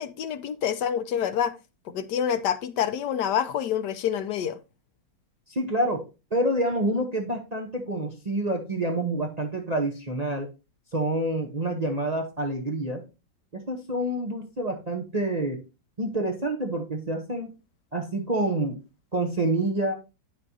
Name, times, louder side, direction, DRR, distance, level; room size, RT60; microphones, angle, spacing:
voice 1, 0.0-1.5 1.8-4.6, left 9 dB, 75° left, 11 dB, 1.2 m, -27 dB
voice 2, 5.5-6.0 6.3-10.5 10.9-13.0 13.5-15.6 16.0-17.6 17.9-18.8 19.1-19.9, right 1 dB, 35° right, 2 dB, 0.7 m, -27 dB
9.1 x 6.4 x 2.7 m, 0.28 s
omnidirectional pair, 1.9 m